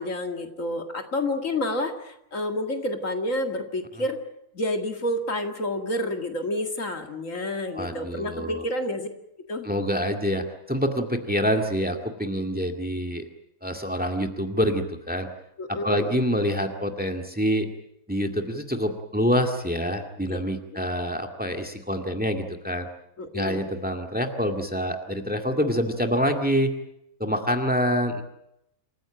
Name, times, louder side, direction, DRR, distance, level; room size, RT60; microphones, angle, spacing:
voice 1, 0.0-4.2 4.5-9.1 9.5-9.7 15.6-16.1 20.3-20.4 20.7-20.8 23.2-23.7, left 1 dB, 65° left, 5 dB, 2.5 m, -29 dB
voice 2, 7.7-8.6 9.6-13.3 13.6-15.3 15.7-17.7 18.1-22.9 23.3-26.7 27.2-28.2, equal, 5° right, 5 dB, 2.0 m, -26 dB
27.5 x 15.5 x 8.9 m, 0.80 s
omnidirectional pair, 1.5 m